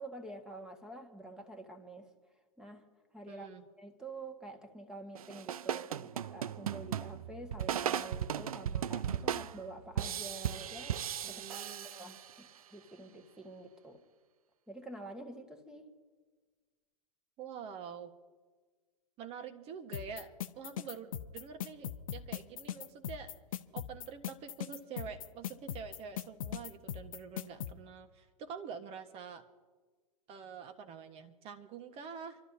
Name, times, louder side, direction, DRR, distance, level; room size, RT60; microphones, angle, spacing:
voice 1, 0.0-2.1 2.6-2.8 3.1-3.5 3.8-11.6 11.9-14.0 14.7-15.9, right 2 dB, 5° right, 5 dB, 1.7 m, -48 dB
voice 2, 3.3-3.6 11.2-11.9 17.4-18.1 19.2-23.3 23.7-29.4 30.3-32.4, right 6 dB, 30° right, 7 dB, 1.4 m, -46 dB
sound 1, 5.2-12.6, right 9 dB, 70° right, 0.5 m, -37 dB
sound 2, 19.9-27.7, left 10 dB, 60° left, 0.8 m, -39 dB
27.5 x 13.0 x 2.8 m, 1.4 s
figure-of-eight pair, 105°, 19 cm